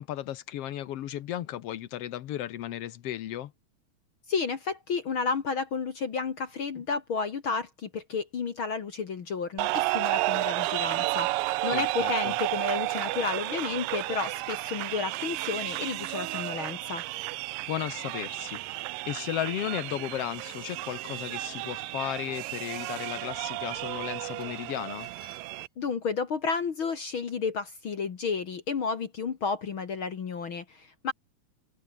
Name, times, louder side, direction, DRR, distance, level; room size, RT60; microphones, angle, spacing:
voice 1, 0.0-3.5 11.7-12.4 17.7-25.1, left 12 dB, 65° left, 1.5 m, -35 dB
voice 2, 4.3-17.0 25.8-31.1, left 5 dB, 45° left, 2.0 m, -32 dB
sound 1, 9.6-25.7, right 21 dB, 90° right, 2.3 m, -32 dB
sound 2, 24.4-26.1, right 2 dB, 20° right, 6.5 m, -59 dB
open air
omnidirectional pair, 3.8 m